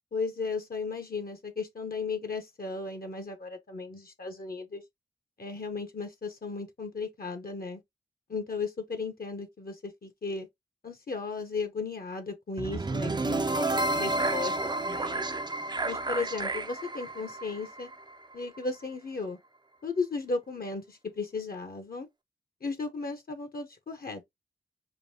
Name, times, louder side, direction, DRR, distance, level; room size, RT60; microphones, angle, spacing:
voice 1, 0.1-4.8 5.4-7.8 8.3-10.5 10.8-15.3 15.8-17.9 18.3-19.4 19.8-22.1 22.6-24.2, left 4 dB, 55° left, 0.8 m, -35 dB
sound 1, 12.6-18.6, right 2 dB, 25° right, 0.4 m, -31 dB
5.0 x 2.1 x 2.8 m
wide cardioid pair, 105°, 18 cm